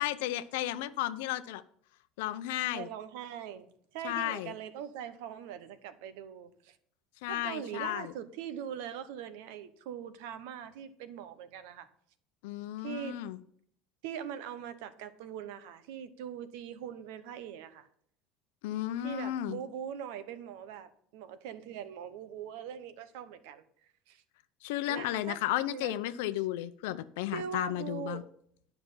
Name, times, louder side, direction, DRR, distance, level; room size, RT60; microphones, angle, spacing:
voice 1, 0.0-1.6 2.2-2.9 4.0-4.5 7.2-8.1 12.4-13.4 18.6-19.6 24.6-28.2, left 13 dB, 85° left, 13 dB, 0.6 m, -33 dB
voice 2, 2.7-3.7 3.9-6.8 7.3-11.9 12.8-13.2 14.0-17.9 19.0-23.6 24.1-24.2 24.9-25.4 25.7-26.0 27.3-28.3, right 9 dB, 80° right, 12 dB, 1.0 m, -42 dB
9.8 x 5.8 x 5.6 m, 0.65 s
supercardioid pair, 120°, 0 cm